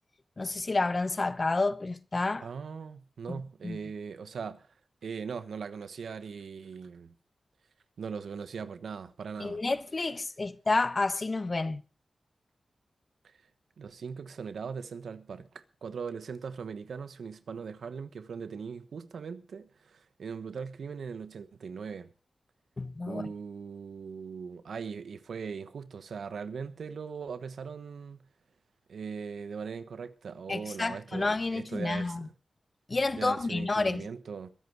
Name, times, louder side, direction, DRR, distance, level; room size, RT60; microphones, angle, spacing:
voice 1, 0.4-2.5 3.3-3.8 9.4-11.8 22.8-23.3 30.5-32.3 32.9-34.1, left 3 dB, 40° left, 0.9 m, -30 dB
voice 2, 2.4-4.7 5.0-7.1 8.0-9.6 13.8-22.1 23.1-28.2 28.9-32.3 33.1-34.5, right 6 dB, 90° right, 1.1 m, -40 dB
23.0 x 8.2 x 4.8 m
cardioid pair, 65°, 0 cm